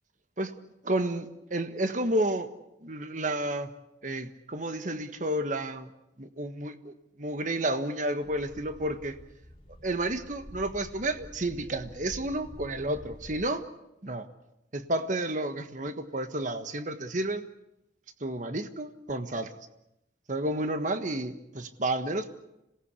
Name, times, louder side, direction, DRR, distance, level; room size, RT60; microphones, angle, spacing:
voice 1, 0.8-2.5 2.8-3.7 4.0-5.9 6.2-9.2 9.8-13.6 14.0-14.3 14.7-17.4 18.2-19.5 20.3-22.4, right 1 dB, 45° right, 9 dB, 1.5 m, -31 dB
sound 1, 8.2-13.5, equal, 35° left, 2.4 m, -48 dB
26.5 x 18.0 x 8.3 m, 0.87 s
head